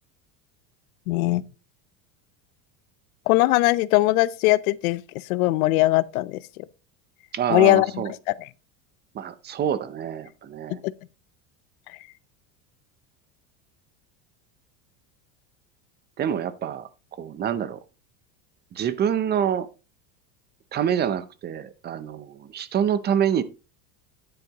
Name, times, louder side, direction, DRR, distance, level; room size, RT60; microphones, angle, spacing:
voice 1, 1.1-1.4 3.3-5.0 5.3-6.4 7.5-8.3 10.8-10.9, left 19 dB, 85° left, 0.7 m, -20 dB
voice 2, 7.3-8.1 9.1-10.8 16.2-16.9 17.2-17.8 18.7-19.7 20.7-23.4, right 9 dB, 25° right, 0.6 m, -26 dB
10.0 x 9.1 x 2.9 m
supercardioid pair, 145°, 41 cm